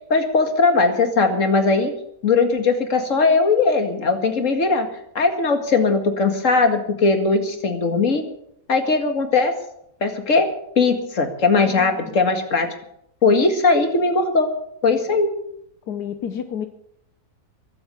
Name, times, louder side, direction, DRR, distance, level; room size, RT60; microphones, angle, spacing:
voice 1, 0.1-1.9 2.2-4.9 5.2-8.2 8.7-9.5 10.0-10.5 10.8-12.7 13.2-14.5 14.8-15.3, left 4 dB, 50° left, 6 dB, 2.3 m, -19 dB
voice 2, 11.6-11.9 15.1-15.2 15.9-16.7, left 8 dB, 80° left, 8 dB, 1.5 m, -30 dB
22.5 x 8.1 x 6.9 m, 0.75 s
omnidirectional pair, 1.7 m